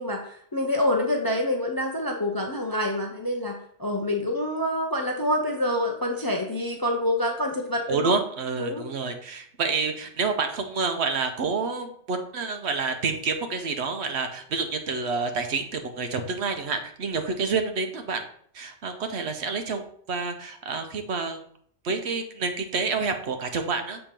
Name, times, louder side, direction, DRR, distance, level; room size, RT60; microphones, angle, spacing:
voice 1, 0.0-8.1 8.6-8.9, left 1 dB, 30° left, 2 dB, 0.4 m, -27 dB
voice 2, 7.9-18.3 18.5-21.4 21.8-24.0, right 4 dB, 70° right, 6 dB, 1.0 m, -28 dB
6.7 x 2.9 x 5.1 m, 0.62 s
omnidirectional pair, 1.2 m